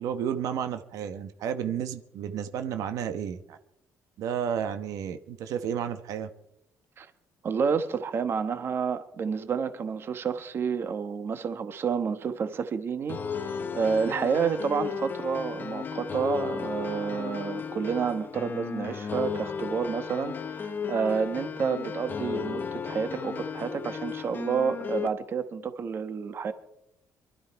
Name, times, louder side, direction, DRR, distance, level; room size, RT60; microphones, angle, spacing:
voice 1, 0.0-3.6 4.2-6.3, right 8 dB, 75° right, 9 dB, 1.0 m, -32 dB
voice 2, 7.4-26.5, right 6 dB, 40° right, 10 dB, 1.2 m, -29 dB
sound 1, 13.1-25.1, left 6 dB, 35° left, 0.8 m, -34 dB
24.0 x 13.0 x 4.6 m, 0.83 s
cardioid pair, 140°, 6 cm